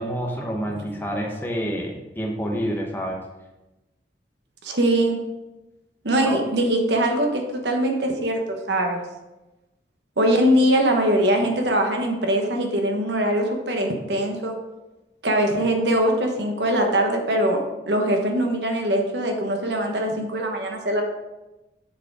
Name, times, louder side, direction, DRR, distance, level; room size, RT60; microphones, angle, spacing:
voice 1, 0.0-3.2 6.2-6.4, equal, 10° left, 0 dB, 0.9 m, -28 dB
voice 2, 4.6-5.2 6.0-9.0 10.2-14.5 15.2-21.0, right 1 dB, 75° right, 3 dB, 1.2 m, -22 dB
7.1 x 4.9 x 4.8 m, 1.0 s
head